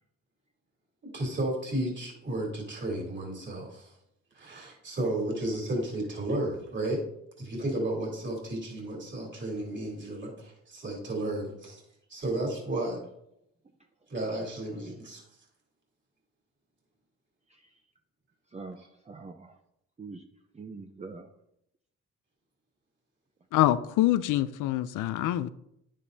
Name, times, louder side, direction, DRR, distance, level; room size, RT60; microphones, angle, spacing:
voice 1, 1.1-3.9 4.3-7.1 7.4-11.8 12.1-13.0 14.1-15.2 18.8-18.9, right 1 dB, 40° right, 3.4 m, -33 dB
voice 2, 18.5-19.5 20.0-20.2 20.5-21.3, right 4 dB, 20° right, 0.7 m, -43 dB
voice 3, 23.5-25.5, left 14 dB, 85° left, 0.5 m, -25 dB
10.0 x 9.9 x 2.7 m
cardioid pair, 90°, 30 cm